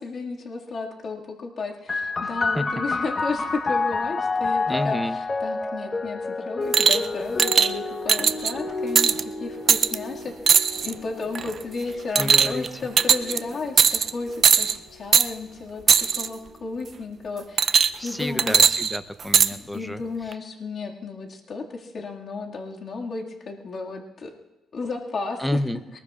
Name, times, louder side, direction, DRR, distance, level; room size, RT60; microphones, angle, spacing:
voice 1, 0.0-18.6 19.5-24.3 24.7-25.4, left 4 dB, 50° left, -2 dB, 2.0 m, -33 dB
sound 1, 1.9-15.1 16.0-16.8, left 3 dB, 30° left, 1.3 m, -30 dB
voice 2, 2.2-2.6 4.7-5.2 12.2-12.7 18.0-20.0 25.4-25.8, left 1 dB, 5° left, 10 dB, 0.8 m, -29 dB
sound 2, 6.7-7.1 7.4-7.7 8.1-8.5 9.0-9.2 9.7-10.0 10.5-10.9 11.3-11.6 12.2-12.7 13.0-13.4 13.8-14.1 14.4-14.7 15.1-15.3 15.9-16.3 17.6-18.1 18.4-19.5 20.3-20.4, right 7 dB, 50° right, 0.5 m, -18 dB
22.5 x 20.0 x 2.5 m, 1.0 s
cardioid pair, 90°, 0 cm